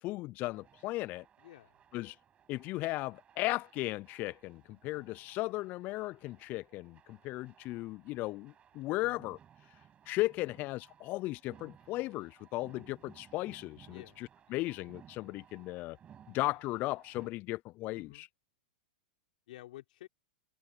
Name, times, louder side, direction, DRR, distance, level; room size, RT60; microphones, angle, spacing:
voice 1, 0.0-1.3 1.9-2.2 2.5-9.4 10.1-16.0 16.3-18.3, left 19 dB, 35° left, 0.4 m, -36 dB
sound 1, 0.5-17.3, right 9 dB, 25° right, 6.0 m, -61 dB
voice 2, 1.4-1.8 9.0-9.2 13.9-14.2 17.9-18.3 19.5-20.1, left 15 dB, 65° left, 4.5 m, -51 dB
hypercardioid pair, 115°, 5 cm